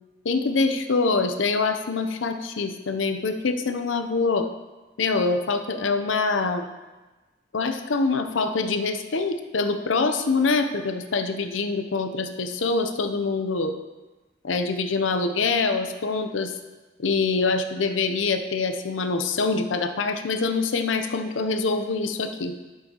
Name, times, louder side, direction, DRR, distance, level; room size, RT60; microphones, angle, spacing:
voice 1, 0.2-4.5 5.0-6.6 7.5-13.8 14.4-16.5 17.0-22.6, left 4 dB, 85° left, 8 dB, 0.6 m, -25 dB
12.0 x 6.9 x 2.9 m, 1.2 s
head